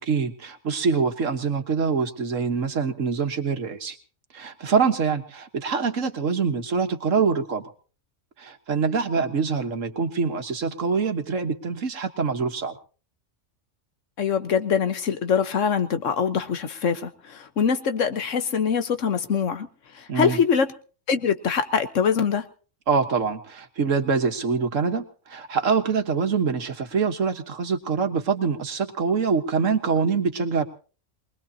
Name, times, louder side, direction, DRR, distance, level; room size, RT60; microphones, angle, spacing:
voice 1, 0.1-4.0 4.3-7.6 8.4-12.8 20.1-20.4 22.9-30.7, right 5 dB, 85° right, 1.8 m, -25 dB
voice 2, 14.2-19.7 20.0-20.7 21.1-22.4, left 6 dB, 80° left, 1.5 m, -23 dB
23.5 x 20.5 x 2.8 m
omnidirectional pair, 1.3 m